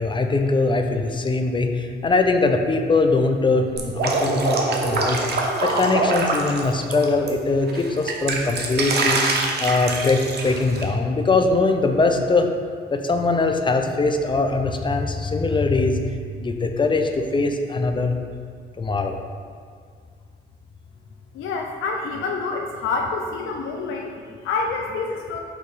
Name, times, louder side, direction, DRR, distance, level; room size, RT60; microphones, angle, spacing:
voice 1, 0.0-5.3 5.6-9.2 9.6-12.5 12.9-16.0 16.4-18.2 18.8-19.1, left 3 dB, 25° left, 5 dB, 0.5 m, -21 dB
Drip, 3.8-7.3 7.7-10.8, right 3 dB, 55° right, 0.8 m, -24 dB
voice 2, 21.3-25.4, left 4 dB, 85° left, 1 dB, 0.5 m, -27 dB
6.5 x 3.0 x 5.1 m, 2.1 s
cardioid pair, 90°, 20 cm